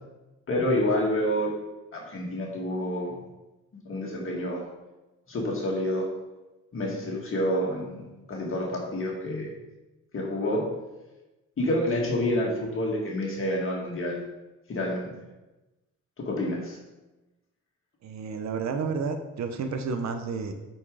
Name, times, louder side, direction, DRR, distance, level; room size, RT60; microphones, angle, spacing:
voice 1, 0.5-1.5 1.9-3.2 3.8-4.6 5.3-6.1 6.7-8.0 8.3-9.5 10.1-10.6 11.6-14.2 14.7-15.1 16.2-16.8, left 1 dB, 45° left, -2 dB, 1.9 m, -28 dB
voice 2, 18.0-20.5, right 5 dB, 65° right, 7 dB, 1.0 m, -31 dB
8.6 x 4.5 x 5.0 m, 1.1 s
cardioid pair, 90°, 30 cm